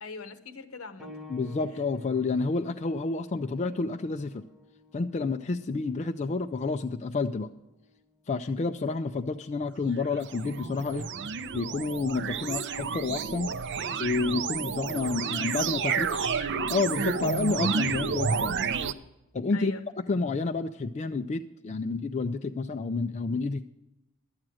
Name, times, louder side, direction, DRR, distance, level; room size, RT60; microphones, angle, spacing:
voice 1, 0.0-1.2 15.9-16.6 19.5-19.8, left 4 dB, 70° left, 9 dB, 1.0 m, -42 dB
sound 1, 1.0-11.2 12.2-12.3 13.0-13.1, left 2 dB, ahead, 1.3 m, -54 dB
voice 2, 1.3-4.4 4.9-7.5 8.3-11.1 11.5-13.5 14.0-16.1 16.7-18.6 19.3-23.6, left 3 dB, 30° left, 6 dB, 0.4 m, -29 dB
sound 2, 9.9-18.9, right 6 dB, 55° right, 0.5 m, -30 dB
12.0 x 8.9 x 6.2 m, 0.97 s
head